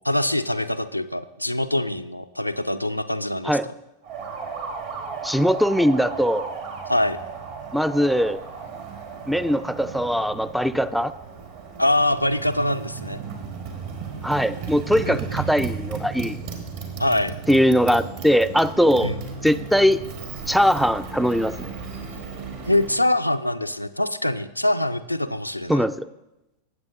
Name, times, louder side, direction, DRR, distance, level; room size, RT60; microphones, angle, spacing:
voice 1, 0.0-3.6 6.9-7.2 11.8-13.2 15.1-15.2 17.0-17.3 19.0-19.2 22.6-25.9, left 1 dB, 90° left, 9 dB, 0.4 m, -24 dB
Motorcycle, 4.0-23.0, right 5 dB, 50° right, 1.6 m, -35 dB
voice 2, 5.2-6.5 7.7-8.4 9.3-11.1 14.2-16.4 17.5-19.1 19.4-20.0 20.5-21.5 25.7-26.1, equal, ahead, 15 dB, 0.3 m, -20 dB
17.5 x 7.8 x 2.6 m, 0.94 s
figure-of-eight pair, 90°, 0 cm